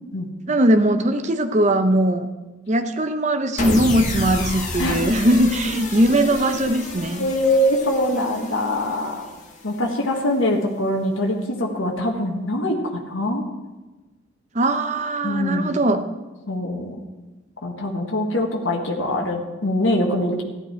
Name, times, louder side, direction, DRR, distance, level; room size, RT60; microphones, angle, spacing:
voice 1, 0.5-2.3 2.7-7.3 14.5-16.0, right 1 dB, 35° right, 7 dB, 0.8 m, -20 dB
sound 1, 3.6-9.9, left 2 dB, 35° left, 1.5 m, -30 dB
voice 2, 7.2-9.3 9.6-13.4 15.2-15.9 16.5-17.0 17.6-20.4, left 1 dB, 80° left, 1 dB, 1.5 m, -23 dB
14.0 x 11.0 x 4.5 m, 1.2 s
head